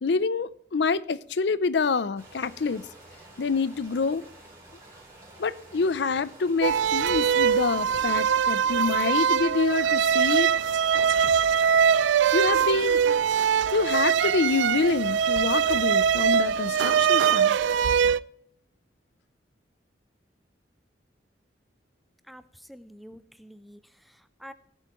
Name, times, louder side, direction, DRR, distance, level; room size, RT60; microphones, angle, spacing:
voice 1, 0.0-2.8 3.4-4.2 5.4-10.5 12.3-13.0 13.7-17.6, left 4 dB, 60° left, 0.5 m, -26 dB
sound 1, 2.2-16.7, right 2 dB, 15° right, 3.7 m, -50 dB
sound 2, 6.6-18.2, right 7 dB, 70° right, 0.3 m, -22 dB
sound 3, 11.2-15.1, equal, 25° left, 1.5 m, -54 dB
voice 2, 22.2-24.5, equal, ahead, 0.4 m, -48 dB
18.5 x 8.0 x 3.0 m
head